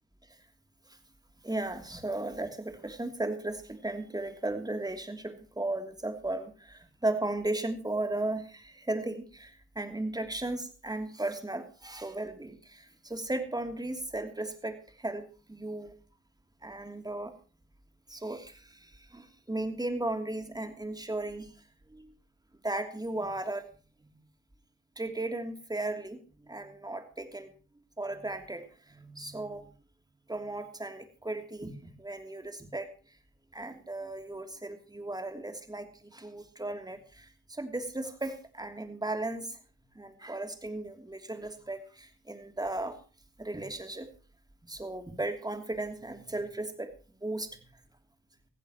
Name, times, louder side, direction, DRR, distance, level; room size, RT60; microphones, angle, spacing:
voice 1, 1.4-15.9 16.6-17.3 18.1-21.5 21.9-22.1 22.6-23.7 24.0-24.2 25.0-27.5 28.0-29.7 30.3-32.9 33.5-39.6 39.9-43.0 43.4-44.1 44.7-46.9 47.2-47.6, right 2 dB, 10° right, 6 dB, 3.0 m, -36 dB
18.5 x 15.0 x 3.0 m, 0.36 s
hypercardioid pair, 45°, 32 cm